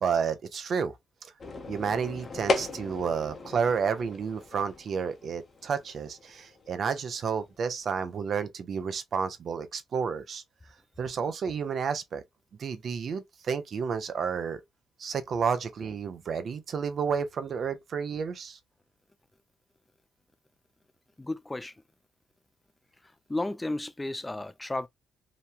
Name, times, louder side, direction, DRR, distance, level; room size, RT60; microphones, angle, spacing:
voice 1, 0.0-1.0 1.2-1.3 1.7-10.4 11.0-12.2 12.6-14.6 15.0-18.6, right 6 dB, 55° right, 0.5 m, -31 dB
sound 1, 1.4-8.0, left 3 dB, 40° left, 0.7 m, -36 dB
voice 2, 21.2-21.7 23.3-24.9, left 2 dB, 15° left, 0.3 m, -33 dB
2.9 x 2.2 x 2.4 m
cardioid pair, 90°, 0 cm